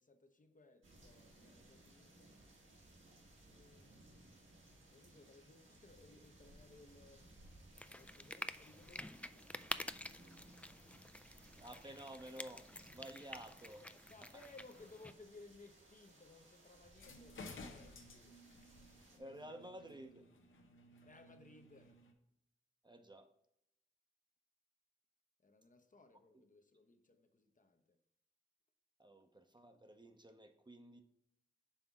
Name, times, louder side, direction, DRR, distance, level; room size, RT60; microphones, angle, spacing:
voice 1, 0.0-2.3 3.4-4.0 4.9-7.5 7.9-9.5 13.8-18.7 21.0-22.0 25.4-28.0, left 3 dB, 40° left, 0.8 m, -61 dB
sound 1, 0.8-19.2, right 1 dB, 80° right, 1.6 m, -63 dB
sound 2, 7.8-15.1, left 1 dB, 5° left, 0.3 m, -49 dB
voice 2, 11.6-13.9 14.2-14.4 19.1-20.2 22.8-23.3 26.3-26.4 29.0-31.0, right 1 dB, 20° right, 0.7 m, -53 dB
sound 3, 16.9-22.1, left 2 dB, 85° left, 0.8 m, -56 dB
5.6 x 3.5 x 5.9 m
cardioid pair, 45°, 20 cm